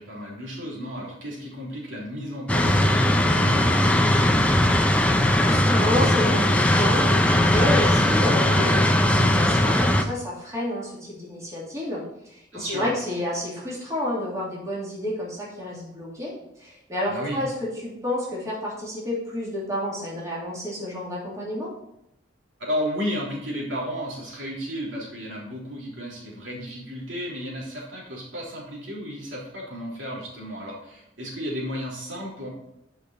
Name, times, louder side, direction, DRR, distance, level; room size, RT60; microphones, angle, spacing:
voice 1, 0.0-4.4 8.5-8.7 12.5-12.9 17.1-17.4 22.7-32.5, equal, 70° right, -4 dB, 3.5 m, -33 dB
sound 1, 2.5-10.0, left 1 dB, 5° left, 0.6 m, -19 dB
voice 2, 5.4-12.0 12.3-16.3 16.6-17.5 17.8-21.7, left 1 dB, 15° right, -6 dB, 2.8 m, -30 dB
10.0 x 5.5 x 4.5 m, 0.81 s
head